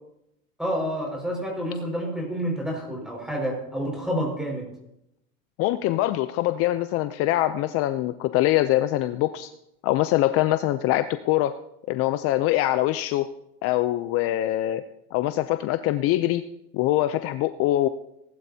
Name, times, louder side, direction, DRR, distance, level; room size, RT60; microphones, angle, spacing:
voice 1, 0.6-4.7, equal, ahead, -1 dB, 5.2 m, -29 dB
voice 2, 5.6-9.5 9.8-11.5 11.9-13.3 13.6-14.8 15.1-16.4 16.7-17.9, left 15 dB, 45° left, 11 dB, 0.5 m, -23 dB
18.5 x 11.5 x 2.8 m, 0.83 s
supercardioid pair, 135°, 31 cm